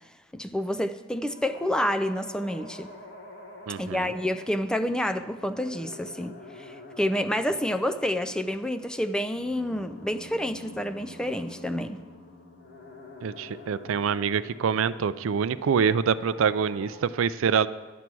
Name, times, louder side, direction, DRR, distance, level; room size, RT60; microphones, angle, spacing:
voice 1, 0.3-2.9 3.8-12.0, left 1 dB, 5° left, 10 dB, 0.3 m, -29 dB
sound 1, 1.2-17.0, left 2 dB, 55° left, 1.3 m, -47 dB
voice 2, 3.7-4.1 13.2-17.7, right 6 dB, 75° right, 16 dB, 0.4 m, -25 dB
11.0 x 8.2 x 6.1 m, 1.3 s
head